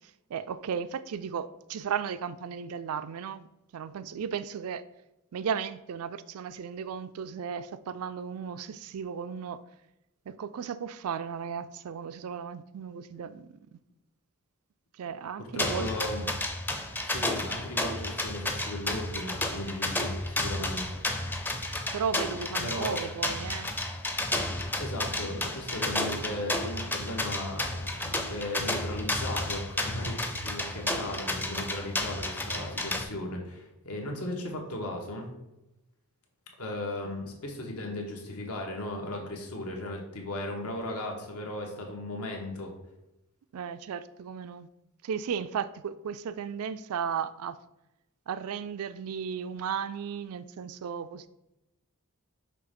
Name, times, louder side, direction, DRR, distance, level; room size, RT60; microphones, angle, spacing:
voice 1, 0.3-3.5 3.7-4.8 5.3-9.6 10.3-13.8 15.0-15.9 21.9-23.7 30.8-31.1 37.0-37.2 43.5-44.7 45.0-47.6 48.3-51.3, right 7 dB, 75° right, 0.4 m, -35 dB
voice 2, 15.5-16.3 17.0-21.0 22.6-23.0 24.8-35.3 36.6-42.7, left 1 dB, 80° left, 1.3 m, -36 dB
sound 1, 15.6-33.0, left 1 dB, 10° left, 0.5 m, -32 dB
5.9 x 3.2 x 5.2 m
head